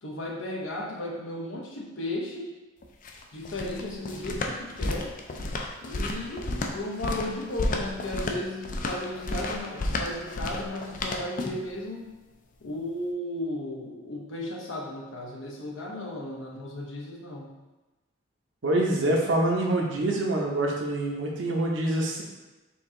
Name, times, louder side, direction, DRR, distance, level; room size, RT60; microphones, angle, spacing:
voice 1, 0.0-2.5 3.3-5.1 5.8-12.1 12.6-17.5, left 1 dB, 85° left, -1 dB, 0.8 m, -35 dB
sound 1, 2.8-11.7, left 2 dB, 45° left, 0.4 m, -32 dB
voice 2, 18.6-22.2, right 1 dB, 70° right, 0 dB, 0.8 m, -25 dB
4.5 x 2.7 x 3.7 m, 1.1 s
head